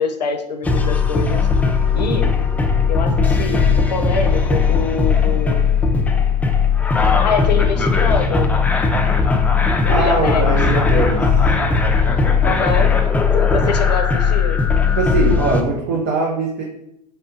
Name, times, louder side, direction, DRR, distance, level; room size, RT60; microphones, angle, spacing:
voice 1, 0.0-1.4 1.9-2.3 2.9-3.6 3.9-5.6 7.2-8.5 9.8-10.6 12.4-12.9 13.3-14.6, left 5 dB, 80° left, 6 dB, 0.5 m, -24 dB
sound 1, 0.6-15.6, left 5 dB, 5° left, 0.4 m, -17 dB
voice 2, 9.9-11.3 14.9-16.6, right 3 dB, 50° right, -2 dB, 0.8 m, -21 dB
4.2 x 3.4 x 2.7 m, 0.81 s
figure-of-eight pair, 85°, 21 cm